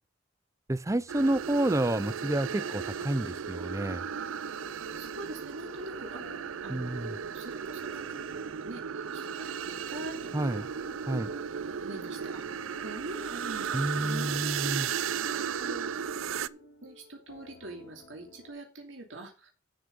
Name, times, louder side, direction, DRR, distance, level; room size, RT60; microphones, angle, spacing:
voice 1, 0.7-4.0 6.7-7.1 10.3-10.7 11.1-11.3 13.7-14.9, right 1 dB, 15° right, 0.5 m, -29 dB
sound 1, 1.1-16.5, right 7 dB, 90° right, 0.5 m, -35 dB
sound 2, 1.2-18.5, left 2 dB, 65° left, 4.9 m, -54 dB
voice 2, 4.9-11.4 11.8-15.0 15.3-15.9 16.4-19.5, right 1 dB, 70° right, 2.6 m, -44 dB
11.5 x 6.5 x 5.2 m
head